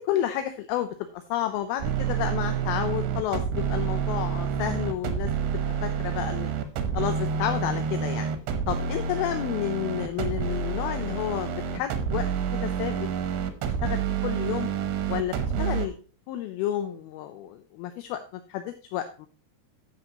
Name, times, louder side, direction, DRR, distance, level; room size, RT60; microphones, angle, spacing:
voice 1, 0.0-5.3 5.8-6.5 7.0-8.3 8.7-12.3 12.5-13.1 13.8-14.7 15.1-16.0 16.3-19.3, left 12 dB, 80° left, 8 dB, 2.4 m, -31 dB
sound 1, 1.8-15.9, right 7 dB, 80° right, 3.1 m, -28 dB
13.0 x 7.9 x 2.9 m, 0.37 s
omnidirectional pair, 4.7 m